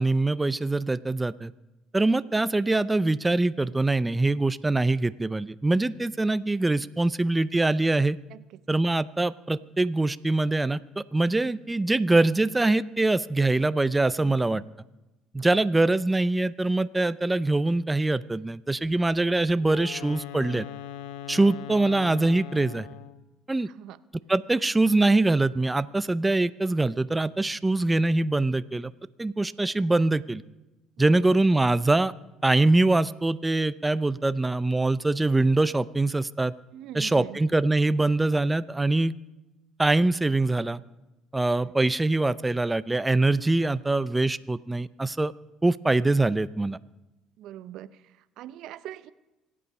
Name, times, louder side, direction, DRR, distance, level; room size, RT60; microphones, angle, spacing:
voice 1, 0.0-1.5 1.9-8.2 8.7-14.6 15.3-20.6 21.3-22.9 23.5-23.7 24.3-28.9 29.2-30.4 31.0-32.1 32.4-36.5 36.9-39.1 39.8-40.8 41.3-45.3 45.6-46.8, right 2 dB, 15° right, 16 dB, 0.5 m, -23 dB
voice 2, 6.8-7.1 8.3-8.6 13.4-13.5 15.4-15.6 23.7-24.0 31.0-31.2 36.7-37.4 41.6-41.7 47.4-49.1, right 12 dB, 70° right, 17 dB, 0.5 m, -43 dB
Wind instrument woodwind instrument, 19.6-23.3, left 11 dB, 85° left, 0.8 m, -40 dB
25.0 x 8.6 x 5.4 m, 1.0 s
supercardioid pair, 70°, 0 cm